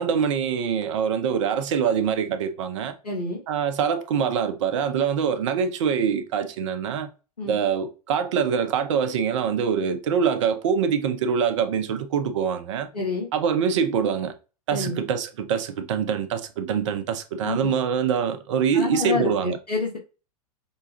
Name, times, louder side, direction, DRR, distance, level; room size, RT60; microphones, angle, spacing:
voice 1, 0.0-2.9 3.5-7.1 7.5-12.9 13.3-14.3 14.7-19.6, right 7 dB, 50° right, 0.7 m, -24 dB
voice 2, 3.0-3.4 7.4-7.5 12.9-13.3 14.7-15.0 17.4-17.6 18.7-20.0, left 3 dB, 85° left, 1.5 m, -28 dB
5.4 x 2.3 x 2.8 m
figure-of-eight pair, 95°, 20 cm